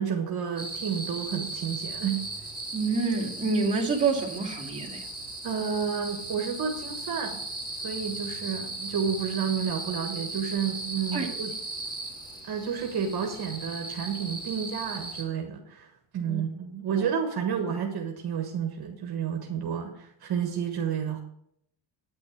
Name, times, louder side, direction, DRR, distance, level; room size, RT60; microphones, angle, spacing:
voice 1, 0.0-2.2 5.4-7.4 7.7-11.5 12.4-21.2, right 7 dB, 55° right, 3 dB, 1.4 m, -30 dB
sound 1, 0.6-15.2, right 2 dB, 10° left, 3.3 m, -37 dB
voice 2, 2.7-5.0 11.1-11.3 16.2-16.4 16.9-17.1, right 4 dB, 15° right, -5 dB, 2.4 m, -27 dB
9.3 x 8.6 x 4.7 m, 0.72 s
cardioid pair, 150°, 44 cm